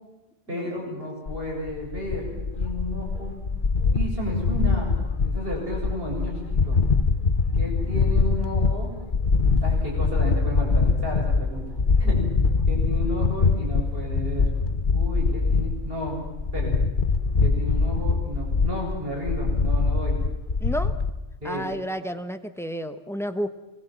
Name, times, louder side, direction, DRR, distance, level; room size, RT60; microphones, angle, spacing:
voice 1, 0.5-3.3 3.9-5.0 5.2-6.3 6.6-6.8 7.6-8.9 9.6-12.2 12.7-14.5 14.9-16.2 16.5-16.8 17.4-20.2 21.4-21.7, left 1 dB, 55° right, -1 dB, 7.6 m, -32 dB
sound 1, 1.3-21.1, left 4 dB, 50° left, 1.3 m, -23 dB
voice 2, 20.6-20.9 21.4-23.5, equal, ahead, 9 dB, 1.1 m, -31 dB
27.0 x 21.0 x 7.8 m, 1.1 s
omnidirectional pair, 1.2 m